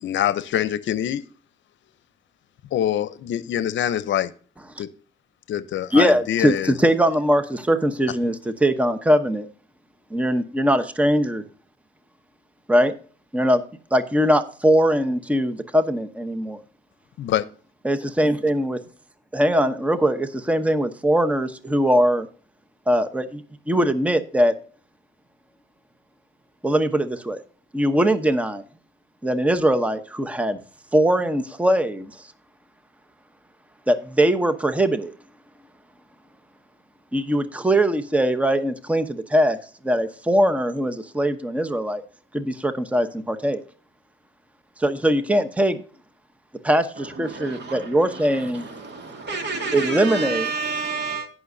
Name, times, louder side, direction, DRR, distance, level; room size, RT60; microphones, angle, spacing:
voice 1, 0.0-1.2 2.7-4.3 4.8-4.9 5.5-6.8 17.2-17.4, left 11 dB, 70° left, 0.7 m, -24 dB
voice 2, 5.9-9.5 10.1-11.4 12.7-12.9 13.3-13.6 13.9-16.6 17.8-18.8 19.3-22.3 22.9-24.5 26.6-27.4 27.7-28.6 29.2-30.6 30.9-32.3 33.9-35.1 37.1-39.6 39.8-42.0 42.3-43.6 44.8-45.8 46.6-48.7 49.7-50.5, equal, 5° right, 0.9 m, -21 dB
voice 3, 47.0-51.3, right 4 dB, 60° right, 2.3 m, -30 dB
16.5 x 6.2 x 2.7 m
cardioid pair, 90°, 20 cm